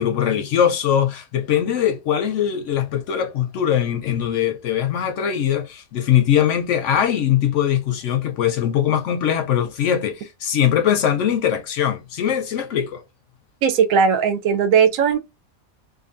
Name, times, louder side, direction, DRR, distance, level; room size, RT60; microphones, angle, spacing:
voice 1, 0.0-13.0, left 9 dB, 70° left, 0.8 m, -21 dB
voice 2, 13.6-15.2, right 7 dB, 70° right, 1.0 m, -17 dB
2.6 x 2.5 x 2.5 m
omnidirectional pair, 1.5 m